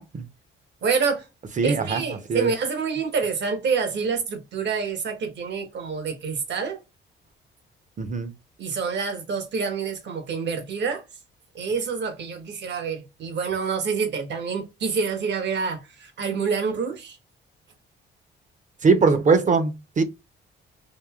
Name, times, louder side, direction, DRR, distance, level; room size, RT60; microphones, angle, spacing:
voice 1, 0.8-1.2 1.6-6.8 8.6-11.0 11.5-17.2, right 5 dB, 65° right, 1.1 m, -27 dB
voice 2, 1.6-2.0 2.3-2.5 8.0-8.3 18.8-20.0, right 4 dB, 40° right, 0.8 m, -21 dB
5.3 x 2.7 x 2.3 m
cardioid pair, 90°, 20 cm